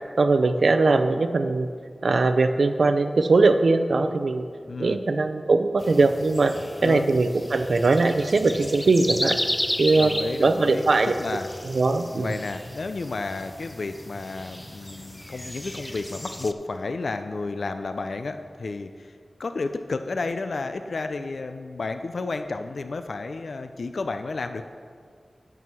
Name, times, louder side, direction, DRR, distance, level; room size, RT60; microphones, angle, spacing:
voice 1, 0.2-1.7 2.0-4.4 4.8-6.5 6.8-9.4 9.8-10.1 10.4-11.1 11.7-12.3, right 3 dB, 80° right, 9 dB, 0.5 m, -20 dB
voice 2, 4.7-5.0 6.8-7.1 10.0-10.9 11.2-11.5 12.1-24.6, left 3 dB, 85° left, 8 dB, 0.4 m, -32 dB
sound 1, 5.8-16.5, left 1 dB, 10° left, 0.5 m, -34 dB
11.0 x 4.8 x 6.1 m, 2.1 s
wide cardioid pair, 75°, 0 cm